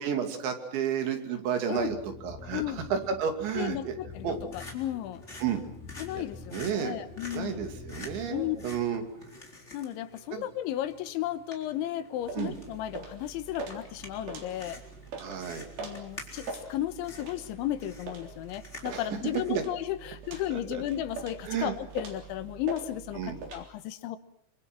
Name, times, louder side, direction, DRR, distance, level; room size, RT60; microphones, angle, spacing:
voice 1, 0.0-2.0 2.2-2.6 2.9-4.0 4.2-4.4 5.4-5.6 6.1-6.2 6.5-7.0 7.3-9.0 10.3-10.4 12.4-12.6 15.2-15.7 18.9-19.0 19.5-19.6 20.5-20.8 21.4-21.7 23.2-23.4, right 8 dB, 75° right, 6 dB, 4.9 m, -31 dB
sound 1, 1.8-8.8, left 5 dB, 60° left, 4.8 m, -47 dB
voice 2, 2.5-2.9 3.6-5.2 6.0-7.6 8.3-8.6 9.7-14.8 15.8-24.2, left 13 dB, 85° left, 11 dB, 3.6 m, -34 dB
sound 2, 4.1-19.7, left 2 dB, 15° left, 3.9 m, -49 dB
sound 3, 12.2-23.6, right 4 dB, 55° right, 5.3 m, -43 dB
26.5 x 25.5 x 6.2 m, 0.68 s
omnidirectional pair, 5.3 m